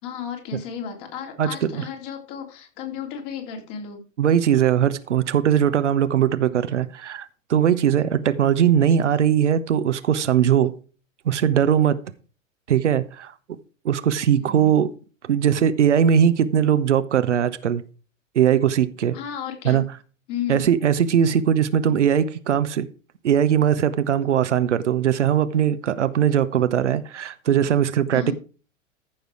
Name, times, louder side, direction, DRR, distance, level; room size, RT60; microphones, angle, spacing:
voice 1, 0.0-4.0 14.4-14.7 19.1-19.9 20.3-20.6 28.1-28.3, left 7 dB, 40° left, 3.2 m, -33 dB
voice 2, 1.4-1.8 4.2-10.7 11.2-12.0 12.7-13.3 13.8-14.9 15.3-17.8 18.3-19.1 19.6-19.8 20.5-22.9 23.2-28.3, right 9 dB, 65° right, 1.0 m, -20 dB
14.5 x 6.6 x 4.8 m
figure-of-eight pair, 95°, 39 cm